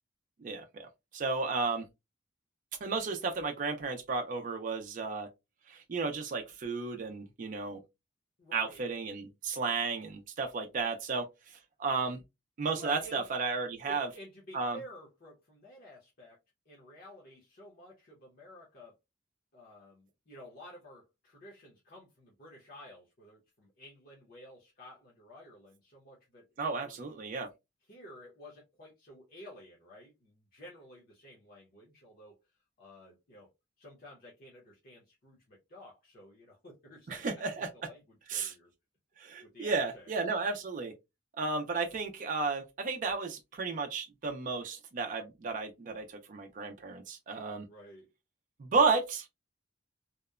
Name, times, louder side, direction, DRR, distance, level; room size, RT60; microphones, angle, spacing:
voice 1, 0.4-1.8 2.8-5.3 5.7-7.8 8.5-11.3 11.8-12.2 12.6-14.1 14.5-14.8 26.6-27.5 37.1-37.7 38.3-38.5 39.2-40.9 41.4-47.6 48.6-49.3, right 4 dB, 45° right, 0.4 m, -33 dB
voice 2, 8.4-8.8 12.7-13.2 13.8-16.4 16.7-18.9 19.5-27.1 27.9-32.4 32.8-33.5 33.8-38.7 39.4-40.1 47.7-48.1, left 1 dB, 50° left, 0.7 m, -52 dB
2.8 x 2.0 x 2.3 m
head